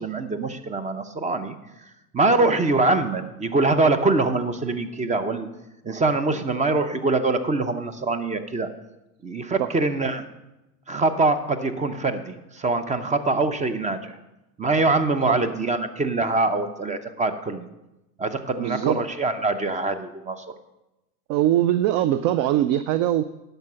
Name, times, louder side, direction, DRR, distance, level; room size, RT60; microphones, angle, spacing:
voice 1, 0.0-5.5 5.8-8.7 9.2-10.2 10.9-14.2 14.6-17.7 18.2-20.5, right 3 dB, 15° right, 11 dB, 0.7 m, -24 dB
voice 2, 18.6-19.0 21.3-23.2, right 12 dB, 40° right, 13 dB, 0.4 m, -22 dB
10.5 x 6.7 x 5.7 m, 0.96 s
hypercardioid pair, 90°, 48 cm